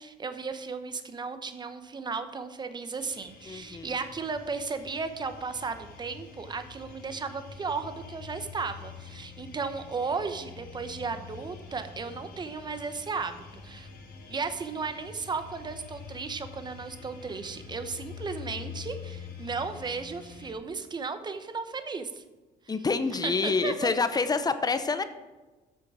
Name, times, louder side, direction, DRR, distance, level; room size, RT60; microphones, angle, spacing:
voice 1, 0.0-13.9 14.3-22.2 23.2-23.9, right 4 dB, 25° right, 9 dB, 1.0 m, -35 dB
sound 1, 3.0-20.5, left 6 dB, 60° left, 1.9 m, -46 dB
voice 2, 3.5-3.9 22.7-25.0, left 4 dB, 25° left, 11 dB, 0.7 m, -27 dB
8.4 x 6.8 x 6.2 m, 1.2 s
cardioid pair, 110°, 17 cm